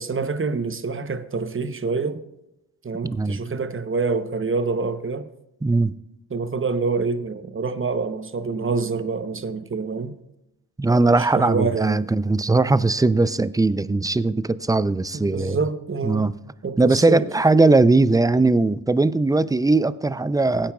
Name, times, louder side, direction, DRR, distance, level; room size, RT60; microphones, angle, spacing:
voice 1, 0.0-2.2 2.8-5.3 6.3-10.1 11.1-12.1 15.3-16.3 16.6-17.3, right 4 dB, 30° right, 0.9 m, -26 dB
voice 2, 3.0-3.4 5.6-5.9 10.8-15.6 16.0-16.3 16.8-20.7, right 3 dB, 10° right, 0.4 m, -19 dB
16.0 x 8.9 x 2.4 m
supercardioid pair, 45°, 40 cm